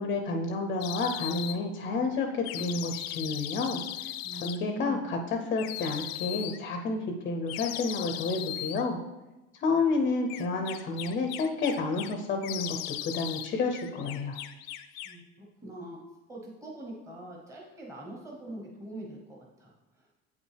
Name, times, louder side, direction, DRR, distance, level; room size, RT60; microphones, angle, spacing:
voice 1, 0.0-3.8 4.3-9.0 9.6-14.4, left 3 dB, 30° left, 4 dB, 0.5 m, -30 dB
sound 1, 0.8-1.6 2.4-4.6 5.6-6.6 7.5-8.8 10.3-12.1 12.4-13.5 13.7-15.2, left 13 dB, 80° left, 0.5 m, -38 dB
voice 2, 4.2-5.7 15.0-16.0 16.3-20.1, right 1 dB, 10° right, -3 dB, 0.9 m, -43 dB
8.2 x 5.3 x 3.3 m, 1.1 s
cardioid pair, 150°, 30 cm